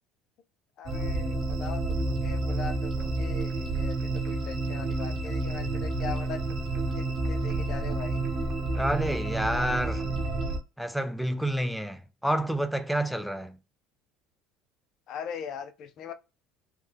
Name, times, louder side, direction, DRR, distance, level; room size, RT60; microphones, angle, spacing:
voice 1, 0.8-6.5 6.9-8.2 15.1-16.1, left 7 dB, 55° left, 0.5 m, -40 dB
sound 1, 0.8-10.6, right 2 dB, 45° right, 1.1 m, -29 dB
voice 2, 8.7-10.1 10.8-13.6, right 1 dB, ahead, 0.3 m, -29 dB
3.2 x 2.1 x 3.4 m
supercardioid pair, 105°, 0 cm